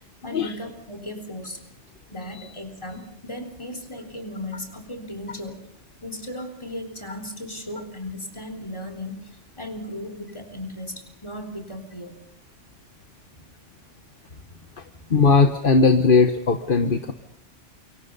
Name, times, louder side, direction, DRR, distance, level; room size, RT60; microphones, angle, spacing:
voice 1, 0.2-1.6 2.1-5.6 6.0-12.2 14.3-14.6 14.9-15.0, left 1 dB, 25° left, 3 dB, 3.9 m, -36 dB
voice 2, 15.1-17.1, left 4 dB, 50° left, 6 dB, 1.4 m, -18 dB
28.5 x 24.5 x 5.5 m, 0.70 s
omnidirectional pair, 1.2 m